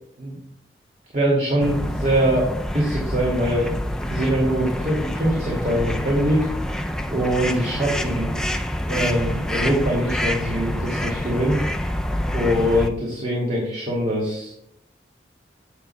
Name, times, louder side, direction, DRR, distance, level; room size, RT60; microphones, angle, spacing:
voice 1, 1.1-3.7 4.1-6.5 7.1-8.4 8.9-11.6 12.3-14.7, equal, 40° right, -3 dB, 2.2 m, -23 dB
sound 1, 1.6-12.9, equal, 5° left, 0.4 m, -27 dB
10.0 x 8.9 x 2.3 m, 0.72 s
head